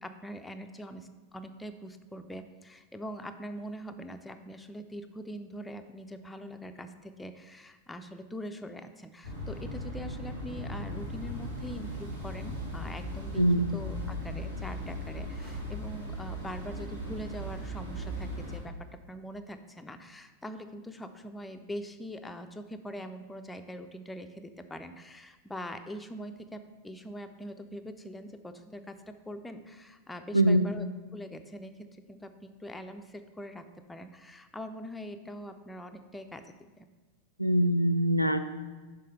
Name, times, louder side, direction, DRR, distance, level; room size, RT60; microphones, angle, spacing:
voice 1, 0.0-13.4 13.7-30.9 31.1-36.9, equal, 5° left, 7 dB, 0.4 m, -43 dB
sound 1, 9.2-18.6, equal, 75° right, 1.6 m, -38 dB
voice 2, 13.4-13.7 30.3-30.6 37.4-38.4, right 1 dB, 90° left, 7 dB, 0.3 m, -23 dB
6.5 x 3.7 x 5.5 m, 1.3 s
figure-of-eight pair, 90°, 0 cm